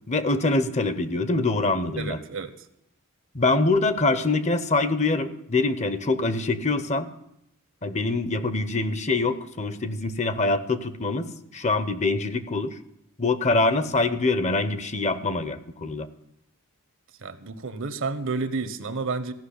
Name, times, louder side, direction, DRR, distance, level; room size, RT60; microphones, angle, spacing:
voice 1, 0.1-2.2 3.3-7.1 7.8-12.8 13.2-16.1, left 3 dB, 30° left, 13 dB, 0.8 m, -24 dB
voice 2, 2.0-2.5 17.2-19.3, right 4 dB, 60° right, 12 dB, 1.0 m, -30 dB
15.0 x 6.2 x 10.0 m, 0.81 s
head